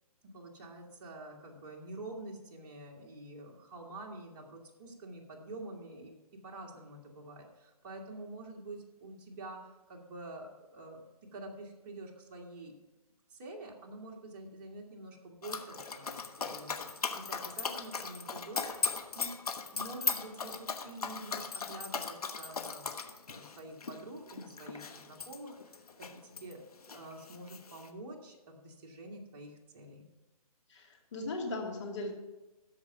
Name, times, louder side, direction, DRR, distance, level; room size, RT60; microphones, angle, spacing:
voice 1, 0.2-11.0 11.3-12.7 13.3-16.8 17.1-19.3 19.7-23.0 23.3-26.6 26.9-30.1, right 2 dB, 35° right, -1 dB, 1.9 m, -47 dB
Dog, 15.4-26.5 26.8-27.9, left 5 dB, 75° left, 1.1 m, -38 dB
Hammer / Wood, 15.9-16.1 16.4-19.3 19.8-20.8, equal, 5° left, 1.9 m, -54 dB
voice 2, 30.7-32.1, left 2 dB, 50° left, 1 dB, 2.4 m, -38 dB
13.0 x 5.0 x 5.8 m, 1.1 s
hypercardioid pair, 150°, 20 cm